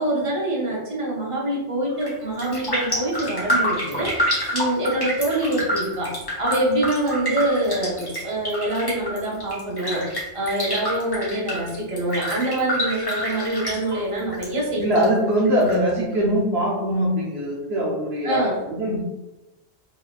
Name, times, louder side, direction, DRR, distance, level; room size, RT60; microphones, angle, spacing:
voice 1, 0.0-10.0 10.3-14.8 18.2-18.6, right 1 dB, 30° right, -5 dB, 1.0 m, -25 dB
Raindrop, 1.9-2.1 2.4-14.5 14.7-15.7 16.1-16.2, equal, 20° left, 1.2 m, -27 dB
voice 2, 14.8-19.0, equal, 60° right, -4 dB, 1.1 m, -22 dB
4.2 x 3.6 x 2.3 m, 1.0 s
omnidirectional pair, 1.2 m